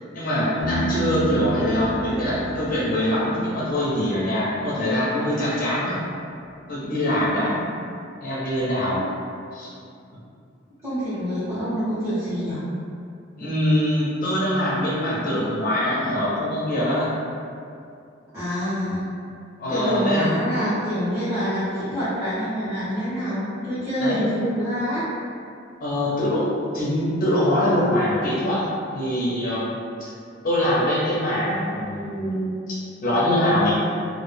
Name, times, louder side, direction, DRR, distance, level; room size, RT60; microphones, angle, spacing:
voice 1, 0.1-6.0 6.7-7.5 8.2-9.0 9.5-9.7 13.4-17.1 19.6-20.3 24.0-24.2 25.8-26.5 26.7-28.7 28.9-29.7 30.0-30.1 30.4-33.8, left 1 dB, 45° left, -8 dB, 0.5 m, -23 dB
Piano, 0.6-4.3, right 3 dB, 80° right, 1.1 m, -31 dB
voice 2, 0.7-1.2 7.3-7.7 8.9-9.0 10.8-12.6 18.3-19.1 19.7-25.0, equal, 15° right, -16 dB, 0.7 m, -26 dB
2.0 x 2.0 x 3.2 m, 2.4 s
head